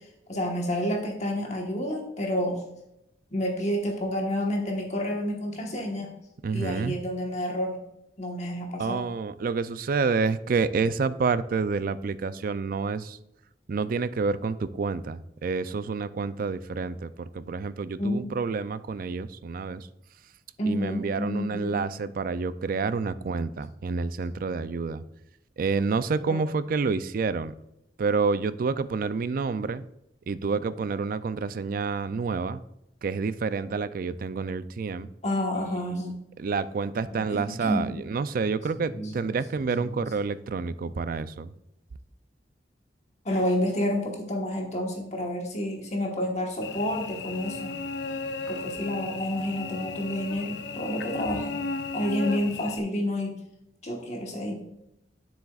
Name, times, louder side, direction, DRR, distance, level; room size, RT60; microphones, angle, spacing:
voice 1, 0.3-2.6 3.3-6.1 6.5-7.8 8.2-9.0 18.0-18.3 20.6-21.9 26.2-26.4 35.2-36.1 37.0-37.9 38.8-39.1 39.7-40.0 43.2-47.7 48.5-51.6 51.9-53.4 53.8-54.5, equal, 40° left, 1 dB, 1.3 m, -29 dB
voice 2, 6.4-7.0 8.8-13.2 13.7-19.9 20.6-25.0 25.6-27.5 28.0-29.9 30.3-32.6 33.0-35.1 35.9-36.1 36.4-41.5, right 4 dB, 55° right, 14 dB, 0.4 m, -28 dB
Cricket / Buzz, 46.6-52.8, left 3 dB, 80° left, 0.6 m, -35 dB
9.7 x 7.5 x 2.4 m, 0.83 s
head